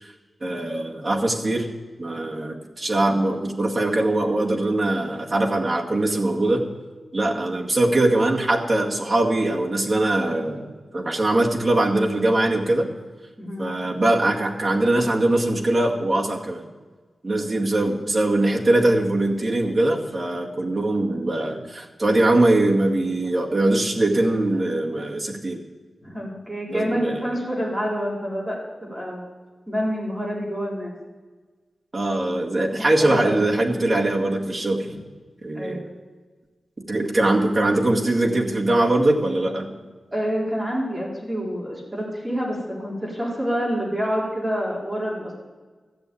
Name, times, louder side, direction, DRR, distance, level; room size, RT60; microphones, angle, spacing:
voice 1, 0.4-1.7 2.0-6.7 7.1-12.9 13.6-16.7 17.2-25.6 26.7-27.2 31.9-34.9 35.4-35.8 36.9-39.7, right 1 dB, 30° right, -1 dB, 2.1 m, -22 dB
voice 2, 13.4-13.7 26.0-29.3 29.7-30.9 32.7-33.4 35.5-35.9 40.1-45.3, equal, 5° right, -4 dB, 4.4 m, -27 dB
14.0 x 7.8 x 8.7 m, 1.3 s
wide cardioid pair, 105°, 0 cm